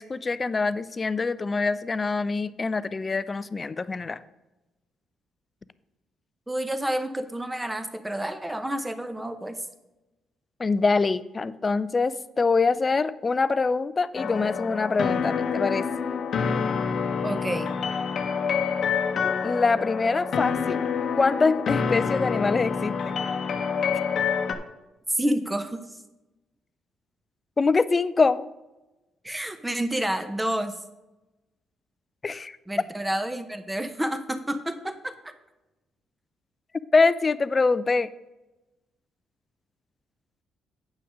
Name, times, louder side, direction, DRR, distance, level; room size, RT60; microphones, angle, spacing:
voice 1, 0.0-4.2 10.6-15.9 19.4-20.8 21.2-23.2 27.6-28.5 32.2-32.6 36.9-38.1, left 4 dB, 30° left, 16 dB, 0.4 m, -24 dB
voice 2, 6.5-9.6 17.2-17.7 25.1-25.8 29.2-30.8 32.7-35.3, right 1 dB, 10° right, 9 dB, 0.9 m, -29 dB
sound 1, 14.1-24.5, left 6 dB, 60° left, 0.8 m, -27 dB
8.7 x 5.9 x 5.0 m, 1.0 s
cardioid pair, 90°, 0 cm